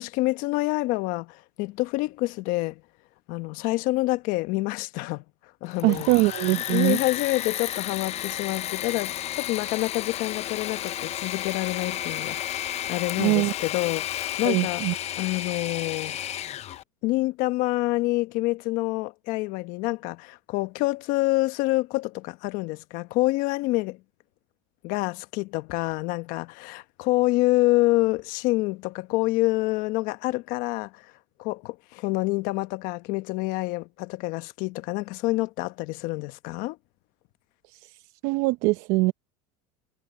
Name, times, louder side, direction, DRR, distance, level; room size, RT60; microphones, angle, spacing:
voice 1, 0.0-2.8 3.3-5.2 5.6-6.1 6.7-14.8 15.2-16.3 17.0-24.0 24.8-31.1 31.4-36.8, left 20 dB, 65° left, 1.2 m, -27 dB
Engine / Mechanisms, 5.6-16.8, left 12 dB, 45° left, 0.8 m, -32 dB
voice 2, 5.8-7.0 13.2-13.5 14.4-14.9 37.7-37.9 38.2-39.1, right 22 dB, 70° right, 0.9 m, -23 dB
supercardioid pair, 100°, 15 cm